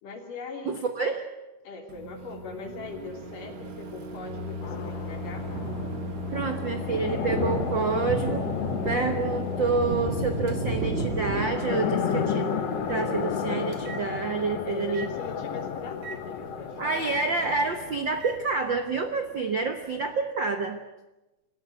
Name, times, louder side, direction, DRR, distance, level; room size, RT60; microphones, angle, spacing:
voice 1, 0.0-0.8 1.6-5.5 14.6-17.3, left 4 dB, 75° left, 3 dB, 4.7 m, -40 dB
voice 2, 0.7-1.2 6.3-8.5 8.8-12.5 12.9-15.1 16.8-20.8, right 4 dB, 60° right, 7 dB, 1.2 m, -28 dB
Microwave oven, 1.9-18.4, left 1 dB, 45° right, 2.2 m, -38 dB
sound 1, 4.6-18.4, left 7 dB, 55° left, 2.1 m, -33 dB
sound 2, 4.6-4.7 5.0-16.5 16.7-19.9, right 1 dB, 15° right, 4.8 m, -35 dB
26.5 x 15.0 x 9.6 m, 1.0 s
omnidirectional pair, 3.9 m